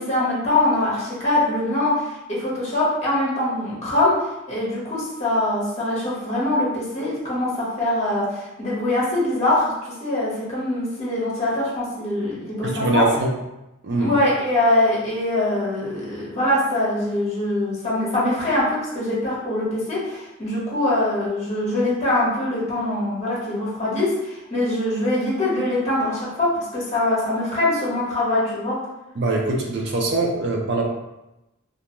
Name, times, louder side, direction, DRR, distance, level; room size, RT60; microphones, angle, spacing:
voice 1, 0.0-4.1 4.5-9.7 10.0-13.0 14.0-28.8, left 1 dB, 35° left, -6 dB, 1.0 m, -23 dB
voice 2, 12.6-13.3 13.8-14.1 29.1-30.8, right 2 dB, 55° right, 0 dB, 0.5 m, -22 dB
2.5 x 2.2 x 2.9 m, 0.94 s
head